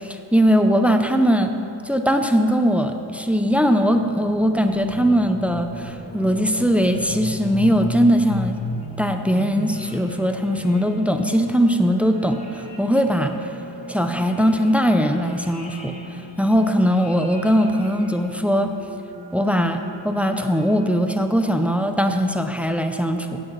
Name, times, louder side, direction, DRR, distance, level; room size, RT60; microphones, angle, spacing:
voice 1, 0.0-1.5 1.8-8.6 9.0-13.3 13.9-15.9 16.4-18.7 19.3-23.4, equal, 5° right, 6 dB, 0.5 m, -20 dB
sound 1, 3.0-21.4, equal, 15° left, 1.2 m, -35 dB
16.5 x 7.8 x 4.0 m, 2.8 s
wide cardioid pair, 130°, 48 cm